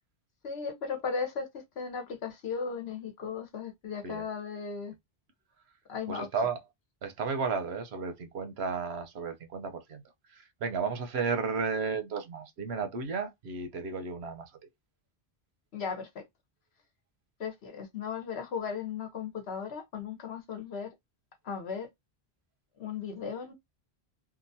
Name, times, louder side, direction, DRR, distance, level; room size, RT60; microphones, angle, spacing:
voice 1, 0.4-5.0 5.9-6.3 15.7-16.2 17.4-20.9 21.4-21.9 22.8-23.5, left 6 dB, 80° left, 1.1 m, -36 dB
voice 2, 6.1-6.6 7.0-10.0 10.3-14.5, right 5 dB, 85° right, 1.0 m, -33 dB
2.9 x 2.3 x 2.6 m
omnidirectional pair, 1.1 m